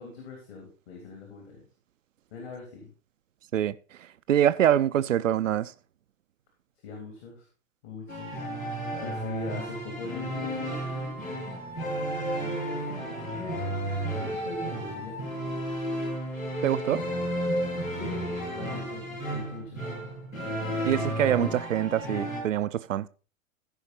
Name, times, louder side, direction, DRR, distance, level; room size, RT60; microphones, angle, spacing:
voice 1, 0.0-1.7 2.3-2.9 6.8-7.4 7.8-8.4 8.7-11.2 12.3-13.6 14.2-15.2 17.9-19.8 21.4-21.5, left 4 dB, 50° left, 3.4 m, -41 dB
voice 2, 3.5-5.7 16.6-17.0 20.8-23.1, right 11 dB, 70° right, 0.6 m, -25 dB
sound 1, 8.1-22.4, right 1 dB, 80° left, 7.0 m, -32 dB
15.5 x 5.7 x 4.2 m
figure-of-eight pair, 100°, 40 cm